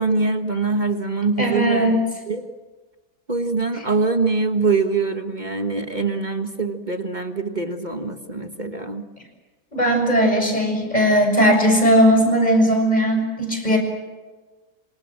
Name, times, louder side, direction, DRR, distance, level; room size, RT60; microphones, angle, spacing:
voice 1, 0.0-2.0 2.3-2.5 3.3-9.1, right 4 dB, 30° right, 6 dB, 1.6 m, -23 dB
voice 2, 1.4-2.0 9.7-13.8, equal, 25° left, 3 dB, 6.8 m, -18 dB
26.5 x 26.0 x 7.6 m, 1.3 s
omnidirectional pair, 1.6 m